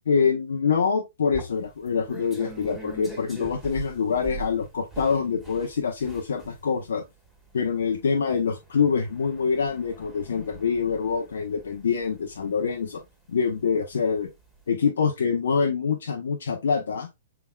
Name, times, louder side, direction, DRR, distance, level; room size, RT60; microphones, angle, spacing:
voice 1, 0.1-7.0 7.5-13.0 13.3-14.3 14.7-17.1, left 6 dB, 70° left, 0.6 m, -25 dB
sound 1, 1.3-13.9 14.3-14.6, right 3 dB, 10° right, 1.8 m, -43 dB
5.7 x 3.6 x 2.3 m
hypercardioid pair, 115°, 0 cm